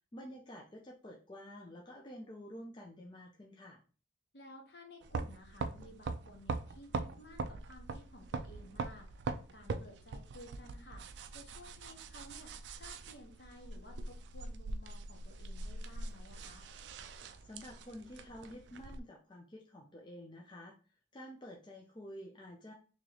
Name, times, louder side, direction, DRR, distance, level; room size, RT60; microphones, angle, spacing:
voice 1, 0.1-3.8 17.4-20.7 21.1-22.7, equal, 25° left, 0 dB, 0.4 m, -50 dB
voice 2, 4.3-12.5 12.8-16.7, left 1 dB, 60° left, 2 dB, 1.0 m, -55 dB
sound 1, 5.0-19.0, right 3 dB, 65° right, 0.3 m, -42 dB
3.1 x 2.9 x 3.8 m, 0.37 s
head